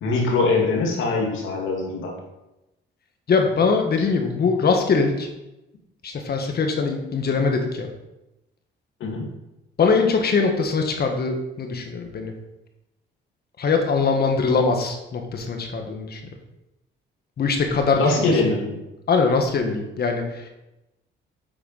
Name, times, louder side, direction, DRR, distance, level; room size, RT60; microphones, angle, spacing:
voice 1, 0.0-2.2 9.0-9.2 18.0-18.8, left 3 dB, 80° left, 0 dB, 2.4 m, -22 dB
voice 2, 3.3-5.3 6.0-7.9 9.8-12.3 13.6-16.2 17.4-18.3 19.1-20.5, left 4 dB, 50° left, 3 dB, 1.6 m, -22 dB
8.5 x 4.7 x 5.7 m, 0.94 s
cardioid pair, 90°, 20 cm